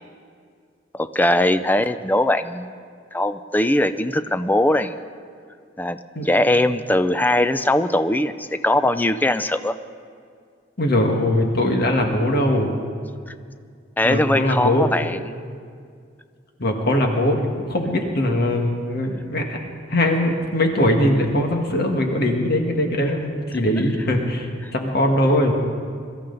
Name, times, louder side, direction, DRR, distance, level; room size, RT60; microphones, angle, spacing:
voice 1, 0.9-2.7 3.1-5.0 5.8-6.0 6.2-9.7 14.0-15.4, left 1 dB, 10° left, 11 dB, 0.4 m, -20 dB
voice 2, 10.8-12.7 14.0-14.8 16.6-19.6 19.9-24.5 24.7-25.5, left 1 dB, 55° left, 2 dB, 1.7 m, -21 dB
22.5 x 13.0 x 4.0 m, 2.2 s
head